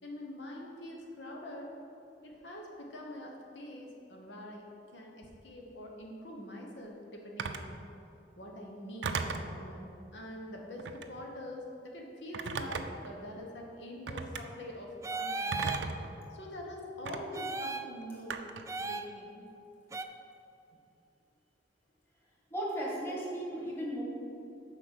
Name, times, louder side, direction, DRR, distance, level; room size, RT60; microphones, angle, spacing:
voice 1, 0.0-1.7 2.2-7.8 8.4-15.6 16.3-18.4 18.8-19.5, left 1 dB, 75° left, -1 dB, 1.2 m, -45 dB
Telephone, 7.4-7.7 9.0-9.5 10.8-11.2 12.3-13.1 14.1-14.4 15.5-16.1 17.1-17.2 18.3-18.7, right 4 dB, 85° right, 0.5 m, -36 dB
sound 1, 15.0-15.9 17.3-17.9 18.7-19.1 19.9-20.0, right 3 dB, 15° right, 0.3 m, -35 dB
voice 2, 22.5-24.0, right 1 dB, 15° left, -5 dB, 1.9 m, -35 dB
7.5 x 5.1 x 6.9 m, 2.6 s
head